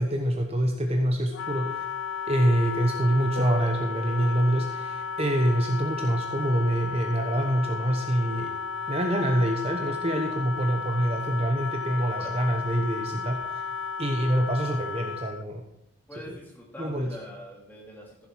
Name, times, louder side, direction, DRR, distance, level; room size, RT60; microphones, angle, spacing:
voice 1, 0.0-1.7 2.3-8.6 8.9-13.4 14.0-15.6 16.3-16.4 16.8-17.2, right 1 dB, 30° right, 3 dB, 1.0 m, -26 dB
Wind instrument woodwind instrument, 1.3-15.4, left 5 dB, 70° left, 0.3 m, -34 dB
sound 1, 3.4-5.3, left 1 dB, 75° right, 2.7 m, -39 dB
voice 2, 16.1-18.3, equal, 10° left, -2 dB, 2.7 m, -43 dB
15.0 x 7.6 x 4.7 m, 0.82 s
head